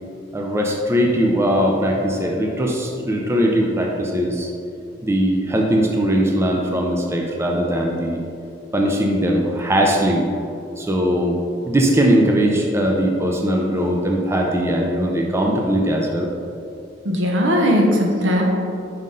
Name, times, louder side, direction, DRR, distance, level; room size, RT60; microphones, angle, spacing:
voice 1, 0.3-4.5 5.0-8.2 8.7-10.3 10.8-11.4 11.6-16.3, equal, 15° right, 0 dB, 0.4 m, -20 dB
voice 2, 17.0-18.4, equal, 70° right, 0 dB, 0.8 m, -18 dB
5.7 x 5.2 x 3.7 m, 2.7 s
head